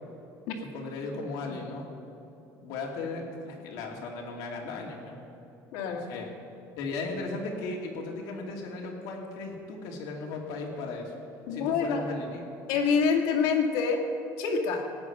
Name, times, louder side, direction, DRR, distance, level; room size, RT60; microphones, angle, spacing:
voice 1, 0.6-1.9 2.6-5.2 6.1-6.3 6.8-11.1 11.5-12.4, left 3 dB, 70° left, 0 dB, 2.6 m, -36 dB
voice 2, 5.7-6.3 11.5-12.1 12.7-14.0 14.4-14.9, left 5 dB, 90° left, 3 dB, 1.9 m, -26 dB
16.5 x 9.5 x 6.0 m, 2.9 s
cardioid pair, 175°, 7 cm